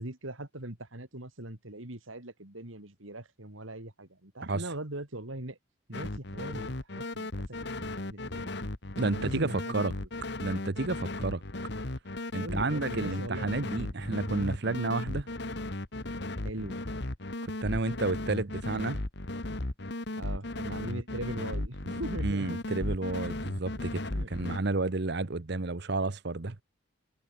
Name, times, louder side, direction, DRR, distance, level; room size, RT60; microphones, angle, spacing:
voice 1, 0.0-5.6 5.9-8.5 9.1-10.1 12.4-14.0 16.4-16.8 20.1-22.6 24.1-24.3, right 1 dB, 75° right, 3.3 m, -41 dB
sound 1, 5.9-24.6, left 2 dB, 55° left, 1.8 m, -36 dB
voice 2, 9.0-9.9 10.4-11.4 12.3-15.3 17.4-19.0 22.2-24.0 24.3-26.6, right 3 dB, 55° right, 1.0 m, -31 dB
head